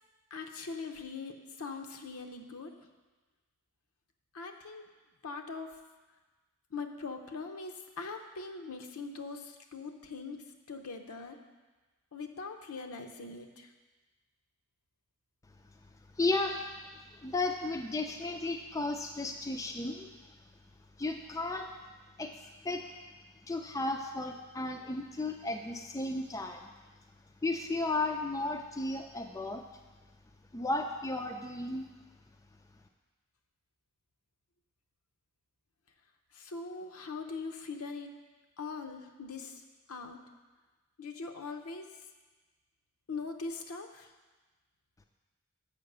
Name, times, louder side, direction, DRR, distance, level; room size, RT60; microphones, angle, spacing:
voice 1, 0.3-2.7 4.3-4.9 5.2-5.7 6.7-10.4 10.7-11.4 12.1-13.7 36.3-38.1 38.6-39.6 39.9-40.2 41.0-41.9 43.1-44.1, left 4 dB, 75° left, 5 dB, 0.7 m, -41 dB
voice 2, 16.2-16.6 17.2-20.1 21.0-21.7 22.2-22.9 23.5-26.7 27.4-29.6 30.5-31.9, left 2 dB, 15° left, 4 dB, 0.3 m, -34 dB
6.7 x 5.6 x 6.6 m, 1.3 s
head